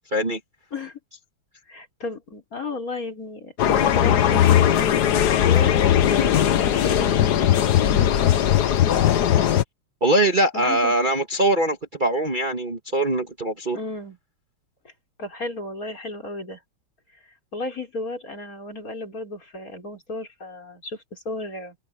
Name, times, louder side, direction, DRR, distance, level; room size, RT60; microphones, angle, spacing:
voice 1, 1.7-5.8 6.1-8.2 10.5-10.9 13.7-14.2 15.2-16.6 17.5-21.8, left 2 dB, 40° left, 5.4 m, -34 dB
sound 1, 3.6-9.6, left 10 dB, 55° left, 1.3 m, -18 dB
voice 2, 10.0-13.8, right 1 dB, 25° right, 1.7 m, -22 dB
omnidirectional pair, 2.4 m